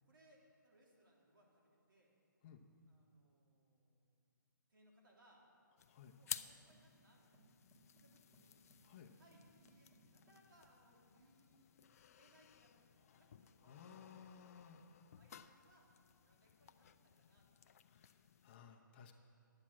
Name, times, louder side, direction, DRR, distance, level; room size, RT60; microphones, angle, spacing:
voice 1, 0.0-2.1 2.9-4.1 4.7-5.4 6.1-7.6 7.9-8.6 9.1-11.7 12.1-14.7 15.1-15.9 16.2-17.5, right 1 dB, 80° right, -2 dB, 3.3 m, -71 dB
sound 1, 5.8-18.6, left 9 dB, 45° left, 0.4 m, -55 dB
sound 2, 6.3-10.5, right 1 dB, 10° right, 1.9 m, -70 dB
voice 2, 8.8-9.1 13.1-13.3 13.6-14.9 17.9-19.1, left 7 dB, 30° left, 2 dB, 0.9 m, -59 dB
10.5 x 8.8 x 7.4 m, 2.7 s
hypercardioid pair, 150°, 11 cm